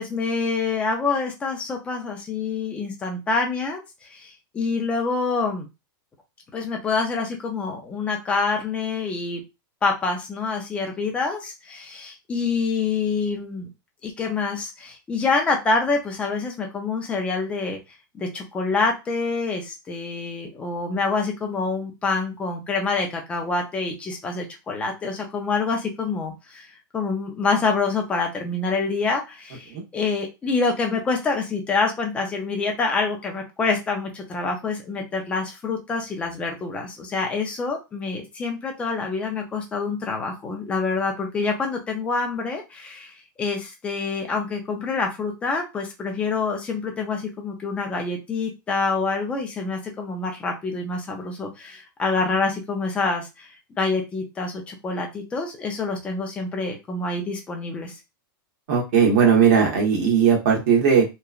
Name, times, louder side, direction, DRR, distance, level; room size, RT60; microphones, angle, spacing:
voice 1, 0.0-3.8 4.1-5.7 6.5-9.4 9.8-13.7 14.0-17.8 18.1-26.7 26.9-43.1 43.4-57.9, left 4 dB, 10° left, 2 dB, 0.4 m, -26 dB
voice 2, 58.7-61.0, right 7 dB, 45° right, -1 dB, 1.1 m, -18 dB
2.9 x 2.2 x 2.4 m, 0.25 s
supercardioid pair, 165°, 12 cm